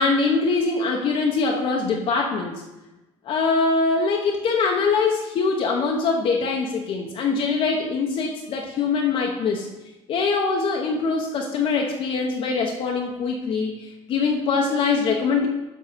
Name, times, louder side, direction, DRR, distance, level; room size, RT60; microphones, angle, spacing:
voice 1, 0.0-2.6 3.2-9.7 10.1-15.5, left 4 dB, 55° left, 0 dB, 1.0 m, -23 dB
10.5 x 3.9 x 6.8 m, 1.0 s
cardioid pair, 120°, 11 cm